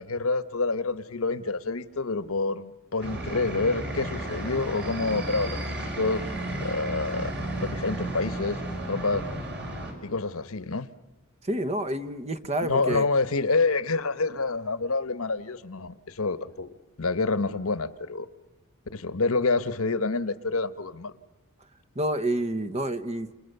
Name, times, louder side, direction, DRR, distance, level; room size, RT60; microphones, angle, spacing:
voice 1, 0.0-6.2 6.6-7.3 7.6-8.6 8.9-9.3 10.0-10.9 12.6-18.3 18.9-21.1, left 3 dB, 70° left, 14 dB, 1.2 m, -27 dB
sound 1, 3.0-9.9, right 1 dB, 50° right, 5.5 m, -33 dB
voice 2, 11.4-13.1 21.9-23.3, right 1 dB, 30° right, 11 dB, 1.1 m, -28 dB
29.5 x 28.0 x 6.8 m, 1.1 s
head